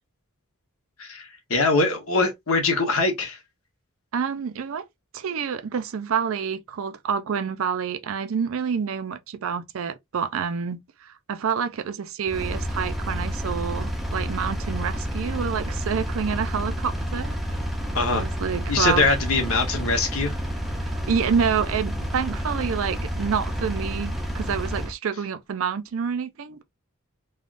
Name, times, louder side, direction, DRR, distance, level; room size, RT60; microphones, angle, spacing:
voice 1, 1.0-3.4 17.9-18.3 18.7-20.4, left 3 dB, 70° left, 1.1 m, -23 dB
voice 2, 4.1-4.9 5.1-17.4 18.1-19.1 20.8-26.6, right 6 dB, 65° right, 0.4 m, -28 dB
Engine, 12.3-24.9, equal, ahead, 0.5 m, -29 dB
3.4 x 2.3 x 2.4 m
head